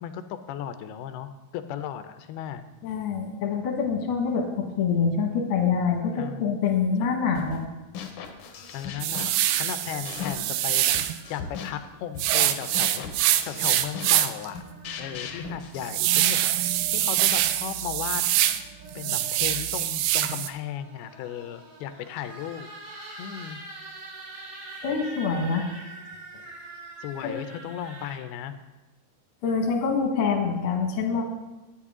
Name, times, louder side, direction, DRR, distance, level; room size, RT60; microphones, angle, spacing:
voice 1, 0.0-2.6 6.2-6.5 8.7-11.0 11.3-13.0 13.5-14.6 15.0-18.2 19.0-22.7 23.2-23.6 27.0-28.5, left 9 dB, 90° left, 10 dB, 2.6 m, -36 dB
voice 2, 2.8-7.6 24.8-25.7 27.2-27.3 29.4-31.2, left 5 dB, 50° left, 1 dB, 1.7 m, -25 dB
sound 1, 7.3-7.7 7.9-10.6 10.9-16.6, left 7 dB, 70° left, 1.9 m, -39 dB
sound 2, 8.3-12.0 13.2-15.5 16.3-17.3 18.4-19.6 20.6-28.2, right 2 dB, 60° right, 4.6 m, -45 dB
sound 3, 9.0-11.2 12.2-14.5 14.9-15.0 15.4-18.6 18.9-20.5, right 13 dB, 80° right, 2.1 m, -24 dB
11.5 x 9.5 x 3.6 m, 1.1 s
omnidirectional pair, 4.4 m